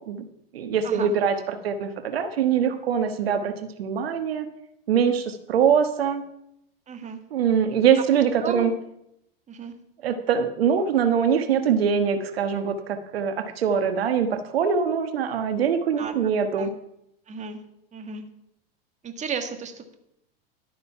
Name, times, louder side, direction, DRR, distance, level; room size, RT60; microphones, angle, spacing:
voice 1, 0.5-4.5 4.9-6.2 7.3-8.7 10.0-16.7, right 7 dB, 85° right, 8 dB, 1.4 m, -23 dB
voice 2, 6.9-7.2 8.4-8.7 9.5-9.7 16.0-16.1 16.5-16.7 17.3-17.6 17.9-18.2 19.0-19.9, right 5 dB, 25° right, 6 dB, 1.7 m, -33 dB
12.0 x 9.3 x 5.7 m, 0.79 s
hypercardioid pair, 120°, 29 cm